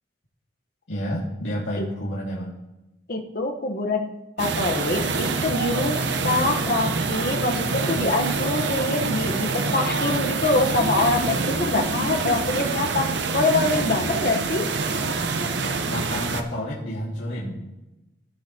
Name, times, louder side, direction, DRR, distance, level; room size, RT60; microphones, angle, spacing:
voice 1, 0.9-2.5 15.9-17.6, equal, 85° left, -7 dB, 2.0 m, -30 dB
voice 2, 3.1-4.1 4.4-14.7, left 2 dB, 50° left, 3 dB, 1.1 m, -25 dB
sound 1, 4.4-16.4, right 4 dB, 65° right, 0.8 m, -26 dB
18.0 x 7.2 x 2.9 m, 0.99 s
head